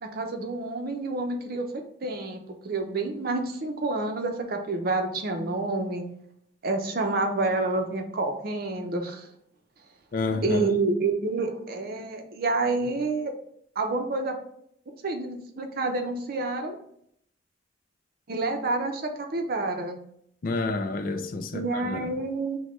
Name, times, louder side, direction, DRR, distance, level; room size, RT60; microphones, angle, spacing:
voice 1, 0.0-1.7 2.0-2.4 2.6-6.0 6.6-9.3 10.4-13.3 13.8-14.4 15.0-16.8 18.3-20.0 21.5-22.6, right 3 dB, 55° right, 0.6 m, -28 dB
voice 2, 10.1-10.7 20.4-22.1, left 3 dB, 50° left, 0.4 m, -29 dB
6.1 x 2.2 x 3.0 m
head